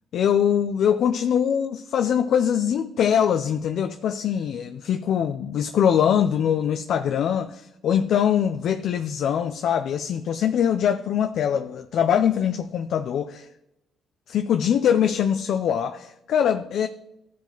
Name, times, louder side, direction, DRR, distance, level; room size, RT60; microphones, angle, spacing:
voice 1, 0.1-13.5 14.3-16.9, left 8 dB, 70° left, 0.4 m, -23 dB
14.5 x 5.1 x 3.9 m
cardioid pair, 90°, 0 cm